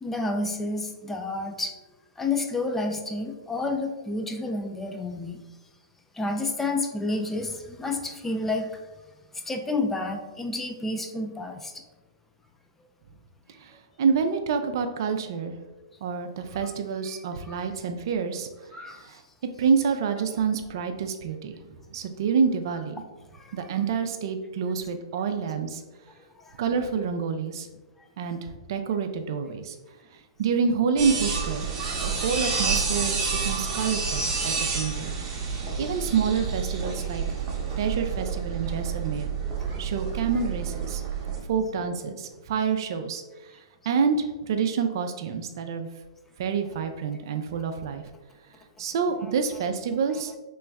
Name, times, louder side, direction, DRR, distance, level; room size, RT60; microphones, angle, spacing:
voice 1, 0.0-1.7 2.2-5.4 6.2-8.7 9.5-11.7 16.6-16.7 17.1-17.2 17.5-17.6 18.7-19.1 23.5-23.7 26.5-26.6 49.2-49.7 50.1-50.2, left 2 dB, 10° left, 4 dB, 0.4 m, -30 dB
voice 2, 13.6-15.6 16.0-18.5 19.0-19.2 19.6-23.0 23.5-25.8 26.6-27.7 28.2-29.8 30.4-31.7 32.0-33.2 33.4-35.1 35.8-37.2 37.8-39.3 39.8-41.0 41.5-43.2 43.9-45.9 46.4-48.0 48.8-50.3, right 6 dB, 55° right, 7 dB, 0.4 m, -27 dB
sound 1, 31.0-41.4, right 5 dB, 25° right, 0.9 m, -29 dB
3.2 x 3.0 x 3.4 m, 1.2 s
hypercardioid pair, 125°, 3 cm